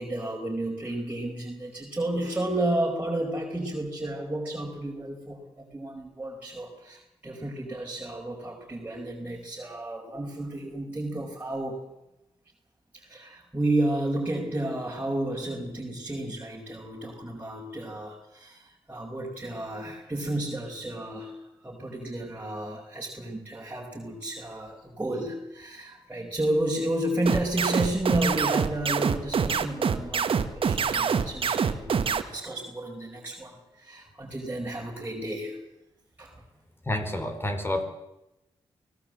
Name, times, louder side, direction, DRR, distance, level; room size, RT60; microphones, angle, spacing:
voice 1, 0.0-11.9 12.9-35.6 36.2-36.3, right 1 dB, 15° right, -3 dB, 5.1 m, -32 dB
sound 1, 27.3-32.2, right 6 dB, 60° right, 1.7 m, -25 dB
voice 2, 36.9-37.8, left 1 dB, 20° left, 8 dB, 4.2 m, -29 dB
24.5 x 17.5 x 7.9 m, 0.92 s
cardioid pair, 70°, 10 cm